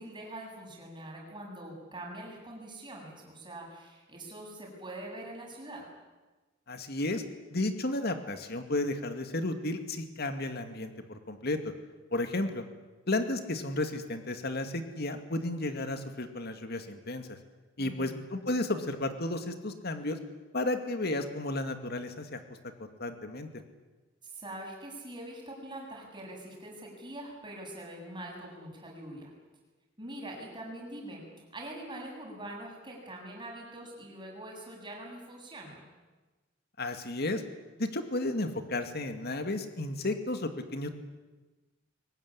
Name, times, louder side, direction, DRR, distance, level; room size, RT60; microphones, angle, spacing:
voice 1, 0.0-5.8 17.8-18.1 24.2-29.3 30.0-31.2 31.5-35.8, right 1 dB, 25° right, -1 dB, 7.7 m, -43 dB
voice 2, 6.7-7.2 7.5-11.6 12.1-12.6 13.1-17.4 17.8-20.2 20.5-22.4 23.0-23.5 36.8-37.4 37.8-40.9, left 2 dB, 55° left, 7 dB, 2.3 m, -33 dB
23.0 x 19.5 x 9.9 m, 1.2 s
head